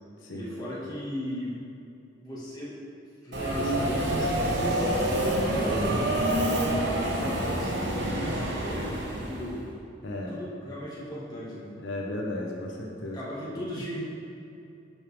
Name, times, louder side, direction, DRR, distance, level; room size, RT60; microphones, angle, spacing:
voice 1, 0.3-1.6 2.2-2.8 3.2-5.0 5.5-6.3 6.8-9.6 10.3-11.7 13.1-14.1, equal, 20° left, -8 dB, 2.0 m, -37 dB
Subway metro underground, 3.3-9.5, right 1 dB, 65° right, 1.1 m, -27 dB
voice 2, 10.0-10.4 11.8-13.2, left 1 dB, 85° left, -1 dB, 1.0 m, -34 dB
11.0 x 5.4 x 3.6 m, 2.7 s
head